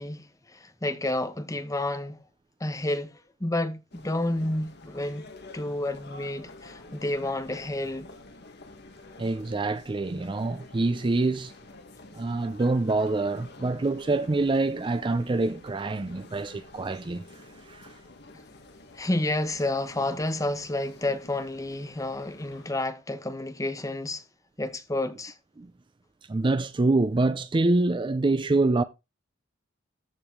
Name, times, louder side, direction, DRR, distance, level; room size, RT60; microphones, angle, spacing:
voice 1, 0.0-2.2 2.6-5.2 5.5-8.1 18.9-24.2 24.6-25.3, left 1 dB, 15° left, 0.9 m, -30 dB
sound 1, 3.9-22.7, left 2 dB, 60° left, 1.5 m, -49 dB
voice 2, 9.2-11.5 12.1-18.0 25.6-25.7 26.2-28.8, right 2 dB, 25° right, 0.4 m, -26 dB
14.0 x 4.9 x 3.7 m
head